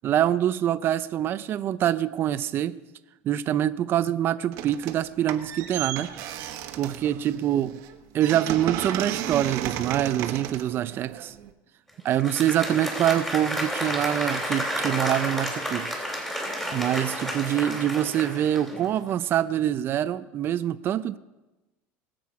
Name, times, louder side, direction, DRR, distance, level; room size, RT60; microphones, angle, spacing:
voice 1, 0.0-2.7 3.2-6.1 6.7-7.8 8.1-11.3 12.0-15.9 16.7-21.2, right 11 dB, 40° right, 13 dB, 0.5 m, -25 dB
sound 1, 4.5-5.0 5.3-11.5, right 11 dB, 65° right, 1.2 m, -34 dB
Applause, 12.1-19.0, equal, 5° left, 3.5 m, -31 dB
21.0 x 7.8 x 4.8 m, 1.1 s
supercardioid pair, 125°, 6 cm